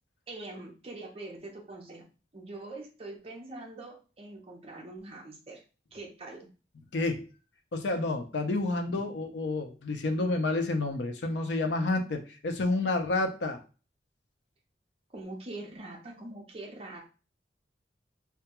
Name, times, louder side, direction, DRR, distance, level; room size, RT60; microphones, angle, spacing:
voice 1, 0.3-2.1 2.3-5.6 5.9-6.5 8.9-9.3 15.1-17.0, right 2 dB, 35° right, 0 dB, 0.6 m, -43 dB
voice 2, 6.9-7.3 7.7-13.6, left 2 dB, 75° left, 6 dB, 0.5 m, -29 dB
2.2 x 2.2 x 2.9 m, 0.35 s
head